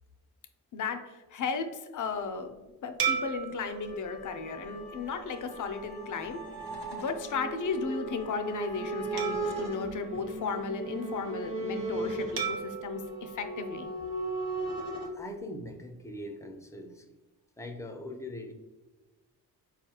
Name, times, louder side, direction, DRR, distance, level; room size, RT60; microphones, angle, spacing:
voice 1, 0.7-6.4 6.9-13.9, left 5 dB, 45° left, 7 dB, 0.6 m, -35 dB
sound 1, 3.0-5.7 6.3-6.4 9.2-11.0 12.4-14.7, right 7 dB, 55° right, 0.8 m, -37 dB
Wind instrument woodwind instrument, 3.7-10.2, equal, 35° right, 1.1 m, -51 dB
sound 2, 4.4-15.1, right 3 dB, 80° right, 1.0 m, -37 dB
voice 2, 15.1-17.1 17.6-18.5, left 1 dB, 5° left, 4 dB, 0.6 m, -41 dB
4.3 x 2.4 x 2.8 m, 1.2 s
supercardioid pair, 40°, 42 cm